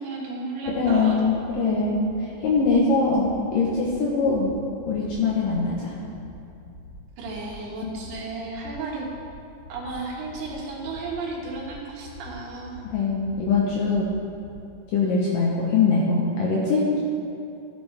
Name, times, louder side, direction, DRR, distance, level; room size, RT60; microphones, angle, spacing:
voice 1, 0.0-1.2 7.2-9.1 9.7-12.8, right 3 dB, 80° right, -3 dB, 4.0 m, -33 dB
sound 1, 0.6-0.9 1.2-1.5 1.8-2.1 2.4-2.7 3.0-3.3 3.6-3.9 4.2-4.5 4.8-5.1 5.4-5.7 6.0-6.3 6.6-6.9 7.2-7.5 7.8-8.1 8.4-8.7 9.0-9.3 9.6-9.9 10.2-10.5 10.8-11.1 11.4-11.7 12.0-12.3 12.6-12.9 13.2-13.5 13.8-14.1 14.4-14.5, left 4 dB, 50° left, 2.7 m, -44 dB
voice 2, 0.8-4.5 4.9-5.9 12.9-14.1 14.9-17.0, left 4 dB, 70° left, -4 dB, 2.1 m, -22 dB
15.0 x 8.8 x 3.4 m, 2.6 s
omnidirectional pair, 5.1 m